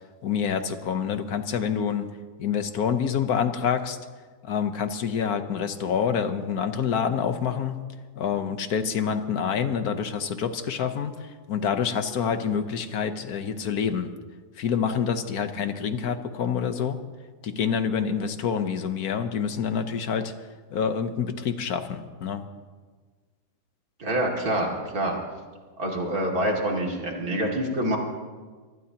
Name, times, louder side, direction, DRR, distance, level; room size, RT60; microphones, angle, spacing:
voice 1, 0.2-2.1 2.4-4.0 4.4-7.8 8.2-14.1 14.6-17.0 17.4-20.3 20.7-22.4, left 7 dB, 65° left, 9 dB, 1.4 m, -27 dB
voice 2, 24.0-25.2 25.8-28.0, right 1 dB, 60° right, 0 dB, 3.0 m, -26 dB
25.0 x 19.0 x 2.9 m, 1.4 s
omnidirectional pair, 1.8 m